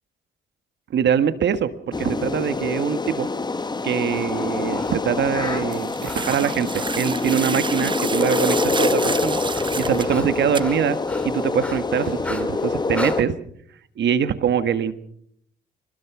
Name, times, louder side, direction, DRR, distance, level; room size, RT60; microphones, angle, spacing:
voice 1, 0.9-3.3 3.8-9.4 9.8-11.0 11.2-13.3 14.0-14.9, right 8 dB, 65° right, 11 dB, 1.6 m, -23 dB
sound 1, 1.9-13.2, left 3 dB, 20° left, 1.3 m, -25 dB
Breathing, 3.8-7.0 7.7-7.9 8.2-13.2, left 1 dB, 5° left, 4.1 m, -40 dB
sound 2, 5.7-10.1 10.5-10.6, right 4 dB, 25° right, 0.9 m, -29 dB
26.5 x 20.0 x 6.1 m, 0.68 s
cardioid pair, 90°, 20 cm